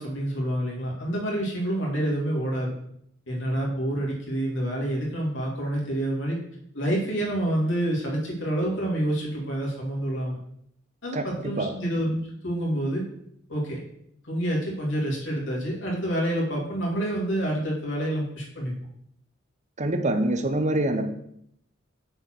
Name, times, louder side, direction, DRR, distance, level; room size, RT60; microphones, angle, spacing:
voice 1, 0.0-2.7 3.3-6.4 6.7-10.4 11.0-13.0 13.5-13.8 14.2-18.8, right 1 dB, 65° left, -2 dB, 2.4 m, -28 dB
voice 2, 11.1-11.7 19.8-21.1, right 1 dB, 35° right, 8 dB, 0.8 m, -25 dB
6.6 x 4.4 x 6.0 m, 0.73 s
head